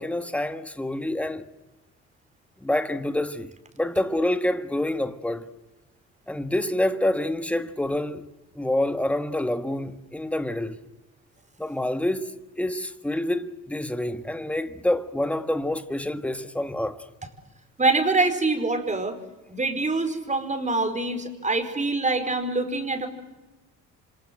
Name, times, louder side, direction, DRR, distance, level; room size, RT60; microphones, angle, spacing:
voice 1, 0.0-1.4 2.6-3.5 3.8-5.5 6.3-8.3 8.6-10.8 11.6-17.1, left 1 dB, 5° left, 1.6 m, -27 dB
voice 2, 17.8-19.2 19.5-23.1, right 3 dB, 25° right, 5.2 m, -25 dB
28.5 x 26.0 x 8.0 m
cardioid pair, 90°, 30 cm